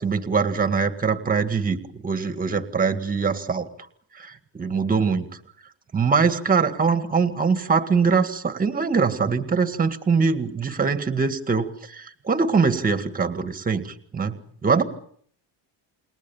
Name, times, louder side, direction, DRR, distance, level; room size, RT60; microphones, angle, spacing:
voice 1, 0.0-3.7 4.2-5.3 5.9-14.8, right 5 dB, 20° right, 9 dB, 1.9 m, -23 dB
29.5 x 21.0 x 7.3 m, 0.62 s
cardioid pair, 170°, 45 cm